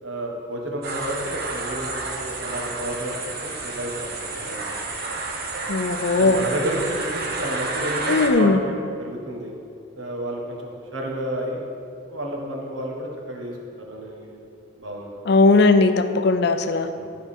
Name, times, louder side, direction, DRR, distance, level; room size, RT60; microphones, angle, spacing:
voice 1, 0.0-4.6 6.2-7.1 7.4-9.5 10.0-11.6 12.1-13.6 13.9-14.4 14.8-15.2 16.9-17.2, right 1 dB, 85° right, 0 dB, 1.4 m, -31 dB
sound 1, 0.8-8.3, right 3 dB, 50° right, 1.1 m, -30 dB
voice 2, 5.7-6.4 8.1-8.6 15.3-16.9, left 3 dB, 60° left, 10 dB, 0.5 m, -18 dB
11.5 x 4.7 x 5.4 m, 2.4 s
head